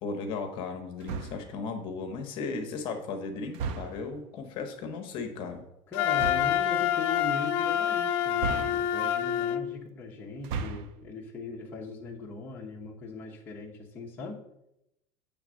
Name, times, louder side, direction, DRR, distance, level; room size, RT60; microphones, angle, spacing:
voice 1, 0.0-5.6, left 4 dB, 45° left, 5 dB, 1.0 m, -36 dB
sound 1, 1.0-1.6 3.5-4.2 6.1-6.6 8.4-9.2 10.3-11.0, right 5 dB, 60° right, 0.6 m, -35 dB
Wind instrument woodwind instrument, 5.9-9.6, left 10 dB, 80° left, 0.6 m, -27 dB
voice 2, 5.9-14.4, left 3 dB, 15° left, -3 dB, 0.9 m, -39 dB
8.0 x 3.4 x 6.3 m, 0.84 s
cardioid pair, 180°, 12 cm